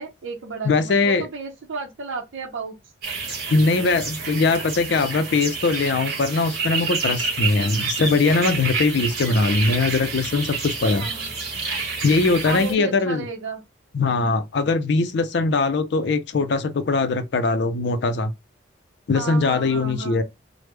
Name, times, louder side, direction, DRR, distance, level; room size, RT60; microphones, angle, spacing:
voice 1, 0.0-2.7 11.0-11.3 12.4-13.6 19.1-20.2, right 4 dB, 80° right, 0.7 m, -33 dB
voice 2, 0.6-1.3 3.5-11.1 12.0-13.2 13.9-18.3 19.1-20.2, left 3 dB, 60° left, 0.4 m, -21 dB
sound 1, 3.0-12.7, right 4 dB, 55° right, 1.3 m, -29 dB
3.3 x 2.1 x 3.1 m
head